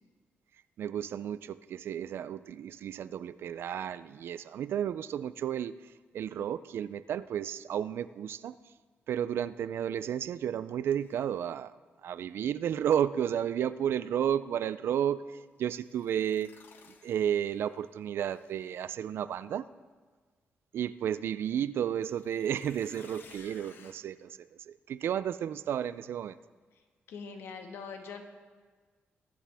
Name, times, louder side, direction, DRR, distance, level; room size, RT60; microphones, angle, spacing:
voice 1, 0.8-8.6 9.1-11.8 12.0-16.5 17.0-19.7 20.7-26.4, right 9 dB, 75° right, 15 dB, 0.3 m, -32 dB
sound 1, 11.0-11.3 15.7-17.8 18.2-18.9 21.9-23.9, left 5 dB, 60° left, 0.9 m, -57 dB
voice 2, 27.1-28.2, left 5 dB, 85° left, 4 dB, 1.4 m, -42 dB
21.5 x 7.4 x 3.5 m, 1.4 s
cardioid pair, 125°, 4 cm